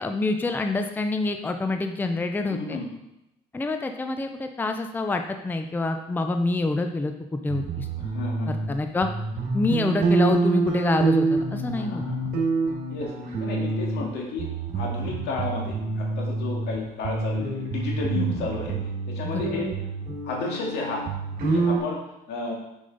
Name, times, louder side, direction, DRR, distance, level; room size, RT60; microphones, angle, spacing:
voice 1, 0.0-2.8 3.5-7.9 8.7-9.1 9.5-12.0 18.2-18.5 19.4-19.6, left 2 dB, 10° left, 6 dB, 0.5 m, -27 dB
voice 2, 2.5-2.9 8.0-8.7 11.8-12.2 12.9-13.1 13.4-18.8 19.1-19.7 20.2-21.1 21.5-22.0 22.3-22.5, left 3 dB, 80° left, -1 dB, 2.0 m, -32 dB
sound 1, 7.5-8.7 9.0-14.1 14.4-16.8 17.0-21.8, right 3 dB, 60° right, 1.8 m, -27 dB
6.6 x 5.4 x 3.9 m, 0.88 s
cardioid pair, 110°, 17 cm